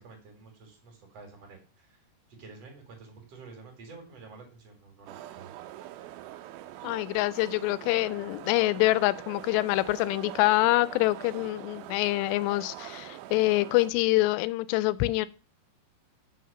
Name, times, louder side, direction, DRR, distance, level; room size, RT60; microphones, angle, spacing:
voice 1, 0.0-2.1 2.4-5.5, right 4 dB, 45° right, 2.6 m, -49 dB
sound 1, 5.1-13.9, right 13 dB, 85° right, 2.1 m, -43 dB
voice 2, 6.8-15.3, left 19 dB, 85° left, 2.7 m, -25 dB
6.5 x 5.9 x 6.7 m
omnidirectional pair, 5.0 m